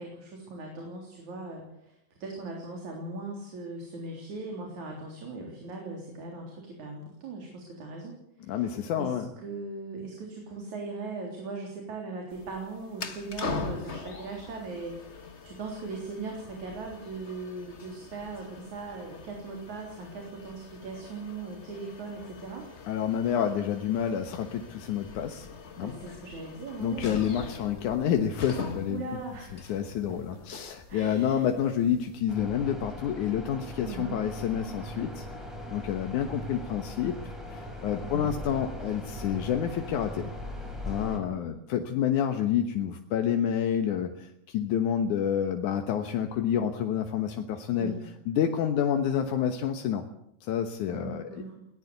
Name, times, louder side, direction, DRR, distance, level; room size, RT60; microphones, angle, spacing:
voice 1, 0.0-22.7 25.8-27.1 28.9-29.7 30.1-30.2 30.5-30.6 30.9-31.4 33.8-34.2 38.0-38.4 41.0-41.4 47.7-48.1 50.9-51.6, right 3 dB, 70° right, 1 dB, 5.1 m, -39 dB
voice 2, 8.5-9.3 22.9-25.5 25.8-25.9 26.8-29.0 29.7-35.3 35.7-40.3 40.9-47.9 48.3-50.0 50.4-51.4, left 9 dB, 80° left, 5 dB, 2.7 m, -28 dB
sound 1, 12.3-32.2, left 4 dB, 35° left, 1.1 m, -42 dB
sound 2, 32.3-41.2, left 1 dB, ahead, 5.5 m, -39 dB
21.5 x 18.0 x 8.1 m, 0.75 s
omnidirectional pair, 3.4 m